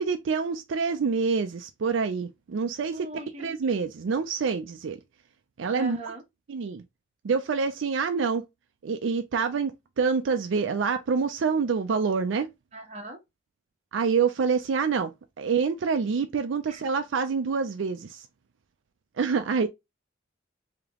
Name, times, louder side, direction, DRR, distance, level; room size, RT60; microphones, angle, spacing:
voice 1, 0.0-3.1 3.4-5.0 5.6-6.0 6.5-6.8 7.2-8.4 8.8-12.5 13.9-18.3 19.2-19.7, right 5 dB, 75° right, 0.4 m, -26 dB
voice 2, 2.9-3.6 5.7-6.2 12.7-13.2 16.7-16.8, right 1 dB, 35° right, 1.1 m, -39 dB
3.4 x 2.8 x 3.5 m
head